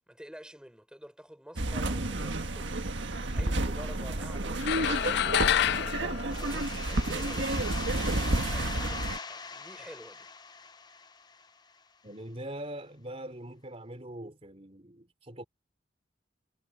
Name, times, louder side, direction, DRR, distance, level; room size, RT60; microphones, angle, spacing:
voice 1, 0.1-10.3, equal, 5° right, 6.1 m, -49 dB
sound 1, 1.6-9.2, right 2 dB, 70° right, 1.6 m, -31 dB
sound 2, 4.6-7.2, left 10 dB, 60° left, 0.3 m, -28 dB
sound 3, 6.3-11.8, left 4 dB, 20° left, 0.8 m, -41 dB
voice 2, 12.0-15.4, right 1 dB, 30° right, 3.8 m, -42 dB
head